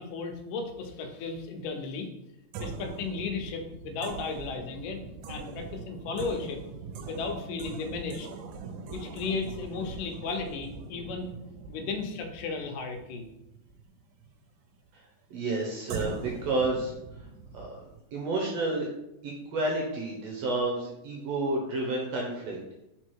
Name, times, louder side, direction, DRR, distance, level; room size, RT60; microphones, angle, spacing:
voice 1, 0.0-2.1 2.6-5.0 5.3-6.6 7.1-8.3 8.9-11.4 11.7-13.3, left 4 dB, 85° left, 5 dB, 2.4 m, -35 dB
sound 1, 2.5-14.3 15.9-18.0, right 4 dB, 85° right, 2.3 m, -41 dB
voice 2, 15.3-17.2 17.5-17.8 18.1-18.9 19.2-22.6, right 2 dB, 70° right, -1 dB, 1.7 m, -30 dB
4.7 x 4.5 x 4.5 m, 0.89 s
omnidirectional pair, 3.7 m